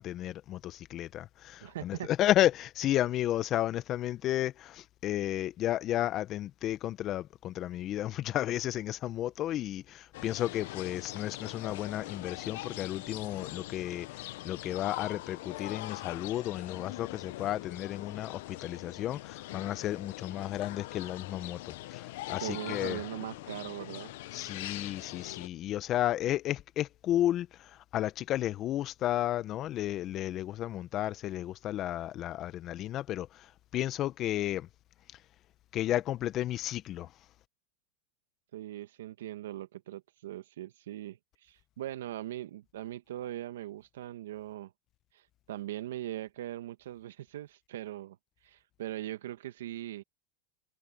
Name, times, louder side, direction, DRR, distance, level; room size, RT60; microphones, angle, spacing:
voice 1, 0.0-23.0 24.3-33.3 33.7-34.7 35.7-37.1, left 13 dB, 40° left, 1.2 m, -32 dB
voice 2, 1.6-2.1 22.4-24.1 38.5-44.7 45.1-48.2 48.4-50.0, right 13 dB, 80° right, 1.9 m, -40 dB
sound 1, 10.1-25.5, left 18 dB, 70° left, 0.8 m, -42 dB
hypercardioid pair, 115°, 0 cm